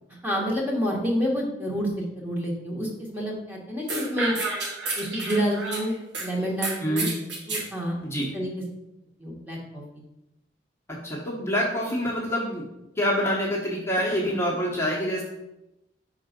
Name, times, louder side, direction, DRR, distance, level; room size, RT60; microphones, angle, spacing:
voice 1, 0.2-4.3 5.0-5.9 6.2-7.1 7.5-8.0 8.3-8.5 9.2-9.8, equal, 10° right, -3 dB, 1.3 m, -28 dB
sound 1, 3.9-6.3 6.6-7.7, right 3 dB, 75° right, 1.5 m, -30 dB
voice 2, 6.8-7.1 8.0-8.3 10.9-12.7 13.0-15.2, equal, 15° left, -5 dB, 1.0 m, -26 dB
5.4 x 3.8 x 5.1 m, 0.91 s
head